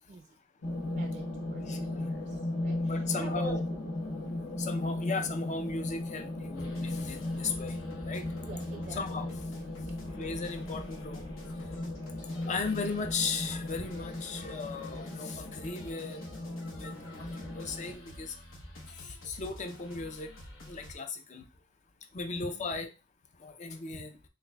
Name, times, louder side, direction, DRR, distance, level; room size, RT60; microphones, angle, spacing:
sound 1, 0.6-17.9, left 1 dB, 60° left, 1.1 m, -37 dB
voice 1, 0.9-3.6 4.2-4.4 8.4-9.3 9.8-10.3 12.4-12.7 22.3-22.7, right 4 dB, 35° right, 5 dB, 0.3 m, -47 dB
voice 2, 1.6-2.1 2.8-3.6 4.6-7.8 8.0-8.3 8.9-9.3 10.1-11.3 12.2-16.2 16.7-18.3 19.0-20.3 20.7-21.4 22.1-22.9 23.4-24.2, left 4 dB, 35° left, 8 dB, 0.4 m, -36 dB
sound 2, 6.5-20.9, left 1 dB, 80° left, 0.9 m, -48 dB
4.1 x 3.3 x 2.2 m, 0.30 s
head